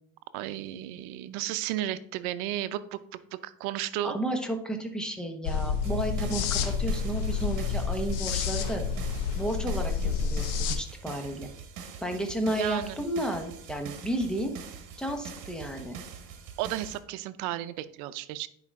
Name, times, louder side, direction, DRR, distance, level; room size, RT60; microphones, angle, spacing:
voice 1, 0.3-3.0 3.3-4.1 12.6-13.0 16.6-18.5, right 13 dB, 80° right, 13 dB, 0.7 m, -33 dB
voice 2, 4.0-8.8 9.4-11.5 12.0-14.5 15.0-16.0, right 1 dB, ahead, 4 dB, 1.0 m, -32 dB
sound 1, 5.4-10.8, left 6 dB, 75° left, 1.2 m, -29 dB
sound 2, 5.8-17.0, right 6 dB, 55° right, 1.4 m, -44 dB
9.8 x 4.9 x 3.6 m, 0.66 s
supercardioid pair, 125°, 43 cm